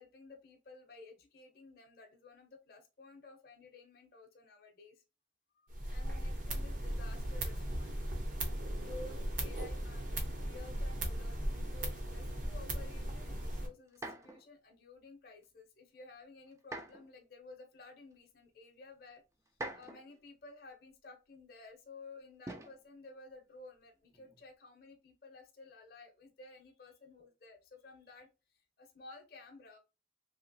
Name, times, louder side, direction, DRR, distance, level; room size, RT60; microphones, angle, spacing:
voice 1, 0.0-5.0 5.6-8.0 8.8-19.2 19.7-29.8, left 3 dB, 50° left, 2 dB, 0.6 m, -54 dB
sound 1, 5.7-13.7, right 1 dB, 45° right, 0.7 m, -37 dB
sound 2, 13.9-14.5 16.6-17.1 18.1-18.2 19.5-20.2 22.5-22.8 24.0-24.4, right 2 dB, 15° right, 0.3 m, -45 dB
2.8 x 2.8 x 2.6 m, 0.29 s
head